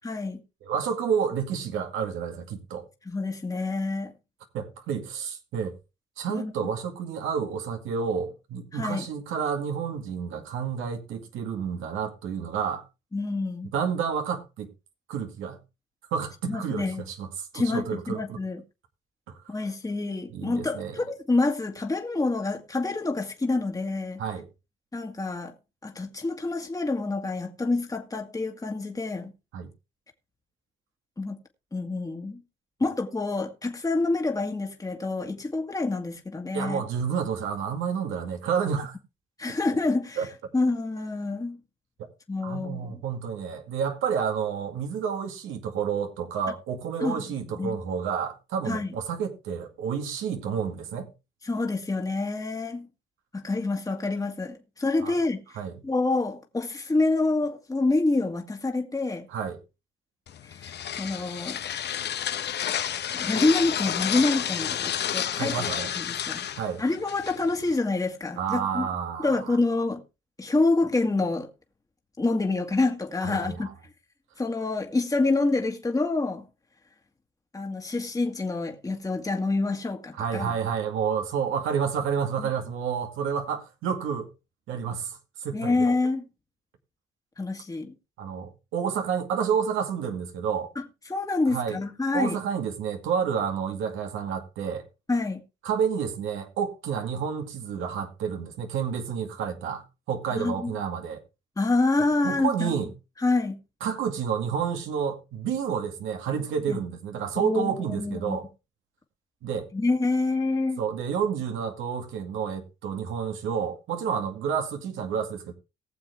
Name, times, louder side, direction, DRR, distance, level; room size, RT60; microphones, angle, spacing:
voice 1, 0.0-0.4 3.1-4.1 6.3-6.5 8.7-9.1 13.1-13.7 16.5-17.0 17.5-18.6 19.5-24.2 24.9-25.5 25.8-29.3 31.2-31.4 31.7-32.4 32.8-36.8 39.4-40.3 40.5-41.6 42.3-43.0 47.0-47.2 47.6-47.8 48.7-48.9 51.4-52.9 53.3-59.3 60.4-61.6 63.1-65.7 66.0-66.5 66.8-68.9 69.2-70.0 70.4-71.5 72.2-73.7 74.4-76.5 77.5-80.5 82.4-82.5 85.5-86.2 87.4-87.9 90.8-92.4 95.1-95.4 100.3-100.7 101.6-102.7 103.2-103.6 106.7-106.8 107.4-108.4 109.7-110.8, left 3 dB, 15° left, 1.8 m, -27 dB
voice 2, 0.6-2.9 4.5-5.7 6.2-12.8 13.7-14.7 15.1-15.6 16.1-17.3 17.5-18.4 19.3-19.4 20.3-21.0 24.2-24.5 29.5-29.7 36.5-39.0 40.2-40.3 42.4-51.1 55.0-55.2 55.6-55.7 59.3-59.6 65.3-65.9 66.5-66.8 68.4-69.6 73.2-73.6 80.2-84.3 84.7-85.8 88.2-90.7 91.5-91.8 92.1-94.8 95.6-101.2 102.2-102.9 103.8-108.5 109.4-109.7 110.8-115.5, right 7 dB, 85° right, 2.2 m, -30 dB
sound 1, 60.3-67.8, left 10 dB, 60° left, 0.9 m, -31 dB
19.0 x 7.1 x 3.5 m
cardioid pair, 90°, 20 cm